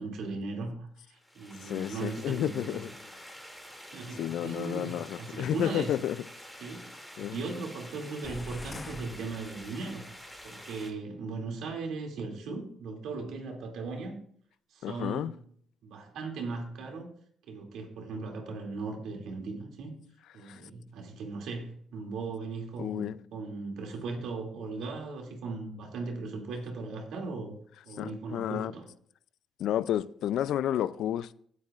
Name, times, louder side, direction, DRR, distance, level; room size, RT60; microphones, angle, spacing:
voice 1, 0.0-2.8 3.8-6.0 6.6-6.9 7.2-10.0 10.4-14.2 14.7-15.4 15.8-17.1 17.5-19.9 20.3-27.5 27.9-28.9, right 3 dB, 80° right, 2.6 m, -38 dB
sound 1, 1.2-10.9, equal, ahead, 2.5 m, -48 dB
voice 2, 1.6-2.9 4.2-6.2 7.2-7.4 14.8-15.3 20.4-20.6 22.8-23.2 28.0-28.7 29.6-31.3, left 11 dB, 80° left, 0.4 m, -31 dB
sound 2, 8.2-10.1, left 3 dB, 30° left, 0.8 m, -45 dB
17.0 x 8.4 x 2.5 m
cardioid pair, 90°, 0 cm